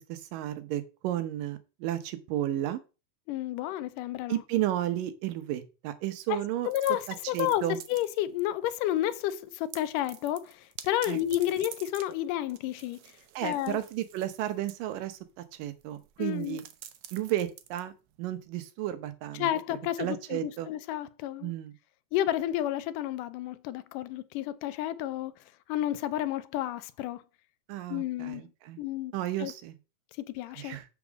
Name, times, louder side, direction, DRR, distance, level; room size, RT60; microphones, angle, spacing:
voice 1, 0.1-2.8 4.3-6.7 7.3-7.8 11.1-11.2 13.4-15.2 15.6-16.6 17.1-17.9 18.2-19.5 20.0-20.7 21.4-21.7 27.7-28.8 29.1-29.8 30.6-30.9, right 13 dB, 85° right, 2.6 m, -33 dB
voice 2, 3.3-4.4 6.3-6.4 6.6-13.0 13.4-13.8 16.2-16.6 19.4-21.5 22.1-25.3 25.7-27.2 27.9-28.5 28.8-29.5 30.3-30.8, left 13 dB, 80° left, 2.2 m, -31 dB
sound 1, 6.6-8.4 8.7-9.1 9.4-18.5, right 11 dB, 70° right, 1.9 m, -49 dB
7.2 x 6.0 x 6.2 m
omnidirectional pair, 3.8 m